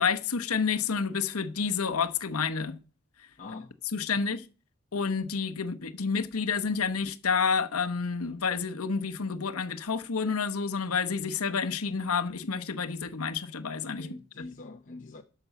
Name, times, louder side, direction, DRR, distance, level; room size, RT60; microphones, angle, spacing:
voice 1, 0.0-2.8 3.9-4.4 4.9-14.1 14.4-14.5, left 5 dB, 75° left, 1.1 m, -29 dB
voice 2, 3.4-3.8 4.1-4.2 14.0-15.2, left 2 dB, 35° left, 0.9 m, -44 dB
12.5 x 7.0 x 5.9 m
head